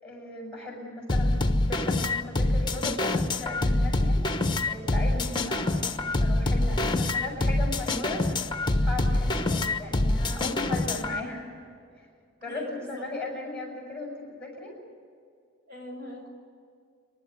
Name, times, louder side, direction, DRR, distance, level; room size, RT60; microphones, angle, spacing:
voice 1, 0.0-4.2 4.7-8.3 8.7-11.5 12.0-12.1 12.4-14.8, left 2 dB, 5° left, -2 dB, 7.3 m, -37 dB
sound 1, 1.1-11.2, left 2 dB, 25° left, 1.1 m, -25 dB
voice 2, 12.4-13.0 15.7-16.3, left 1 dB, 55° right, 1 dB, 5.4 m, -41 dB
27.5 x 12.5 x 9.8 m, 2.3 s
head